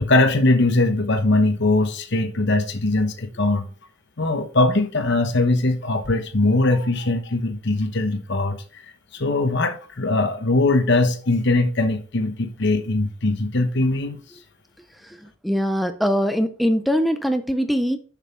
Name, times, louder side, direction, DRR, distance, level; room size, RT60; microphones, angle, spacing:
voice 1, 0.0-3.7 4.2-8.8 9.1-14.2, left 2 dB, 55° left, 1.0 m, -21 dB
voice 2, 15.0-18.0, equal, ahead, 0.4 m, -22 dB
7.0 x 6.3 x 3.6 m
head